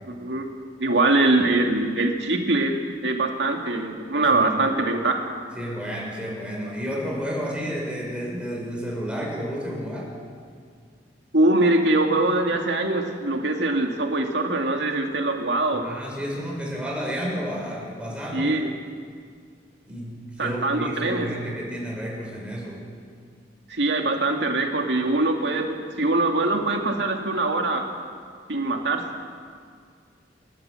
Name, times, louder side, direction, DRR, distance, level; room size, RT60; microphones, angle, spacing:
voice 1, 0.1-0.5 0.8-2.8 3.0-5.2 11.3-15.9 18.3-18.7 20.4-21.3 23.7-27.8 28.5-29.0, right 2 dB, 70° right, 2 dB, 2.3 m, -23 dB
voice 2, 5.5-10.1 15.7-18.5 19.9-22.8, equal, 5° right, -3 dB, 5.7 m, -31 dB
28.5 x 12.5 x 7.7 m, 2.1 s
head